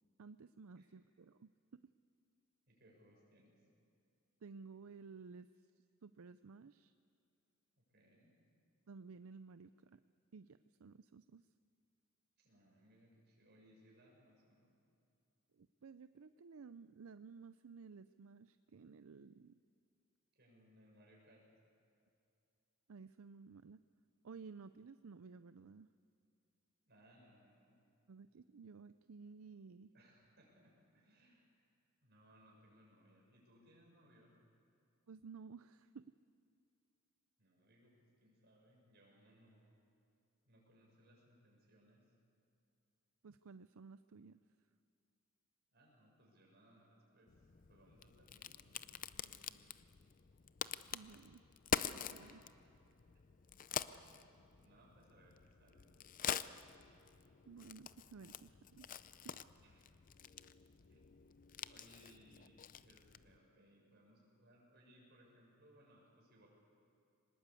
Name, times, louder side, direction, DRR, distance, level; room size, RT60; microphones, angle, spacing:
voice 1, 0.2-1.8 4.4-5.5 6.0-6.9 8.9-10.0 10.3-11.4 15.6-19.6 22.9-23.8 24.2-25.9 28.1-29.9 35.1-36.1 43.2-44.4 50.9-51.4 51.9-52.4 57.5-58.9 59.2-59.3, right 5 dB, 70° right, 12 dB, 0.5 m, -55 dB
voice 2, 2.7-3.6 7.8-8.3 12.4-14.7 20.4-21.5 26.8-27.8 29.9-31.5 32.0-34.4 37.4-39.7 40.5-42.1 45.7-47.4 47.7-49.7 52.2-52.4 53.9-54.1 54.6-56.1 59.6-59.8 60.1-60.2 60.9-61.0 61.7-66.5, equal, 50° right, -2 dB, 7.0 m, -67 dB
Crack, 47.3-63.4, left 8 dB, 40° left, 0.5 m, -46 dB
24.5 x 20.0 x 8.4 m, 2.6 s
head